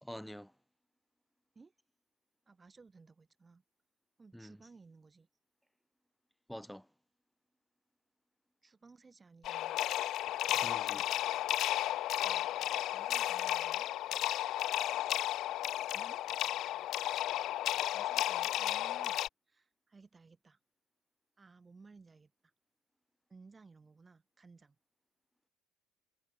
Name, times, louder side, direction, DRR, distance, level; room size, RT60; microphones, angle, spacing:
voice 1, 0.0-0.5 4.3-4.7 6.5-6.9 10.5-11.0, equal, ahead, 1.4 m, -47 dB
voice 2, 2.5-3.6 4.2-5.3 8.6-9.8 12.1-12.5 12.9-13.9 15.9-16.4 17.9-20.6 21.4-22.5 23.3-24.8, right 4 dB, 20° right, 5.6 m, -59 dB
sound 1, 9.4-19.3, left 14 dB, 60° left, 0.6 m, -33 dB
supercardioid pair, 100°, 0 cm